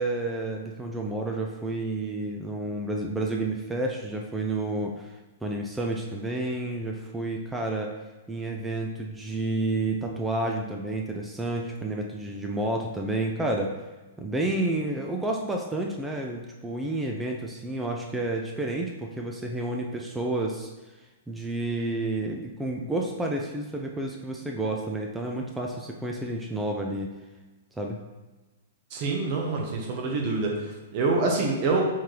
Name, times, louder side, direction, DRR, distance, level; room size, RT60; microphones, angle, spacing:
voice 1, 0.0-8.0 8.3-13.8 14.2-27.1 27.8-28.0, right 2 dB, 10° right, 1 dB, 0.4 m, -30 dB
voice 2, 28.9-31.8, right 3 dB, 40° right, 0 dB, 0.9 m, -26 dB
4.4 x 3.8 x 3.2 m, 1.2 s
hypercardioid pair, 145°, 0 cm